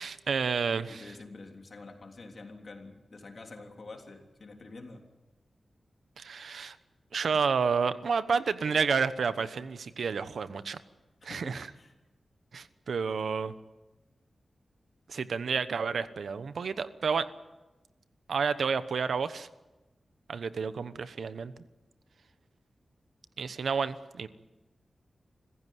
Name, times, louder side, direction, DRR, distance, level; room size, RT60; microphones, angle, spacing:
voice 1, 0.0-1.1 6.2-6.8 7.1-10.8 11.2-11.7 12.5-13.5 15.1-17.3 18.3-19.5 20.3-21.5 23.4-24.3, right 5 dB, 80° right, 13 dB, 1.0 m, -30 dB
voice 2, 0.9-5.0 11.2-11.9, left 3 dB, 45° left, 3 dB, 3.4 m, -47 dB
25.0 x 15.5 x 9.5 m, 1.1 s
wide cardioid pair, 150°, 0 cm